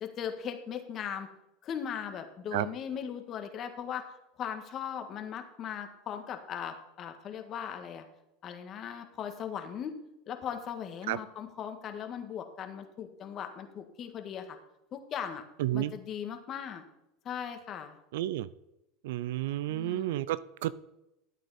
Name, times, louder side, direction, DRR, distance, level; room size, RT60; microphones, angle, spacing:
voice 1, 0.0-1.3 1.6-4.0 4.4-8.0 8.4-10.0 10.3-14.6 14.9-15.4 15.7-16.8 17.2-18.0 19.6-20.2, left 8 dB, 40° left, 6 dB, 1.6 m, -38 dB
voice 2, 15.6-15.9 18.1-18.5 19.0-20.7, right 14 dB, 80° right, 18 dB, 0.4 m, -31 dB
12.5 x 8.4 x 4.3 m, 0.88 s
supercardioid pair, 110°, 0 cm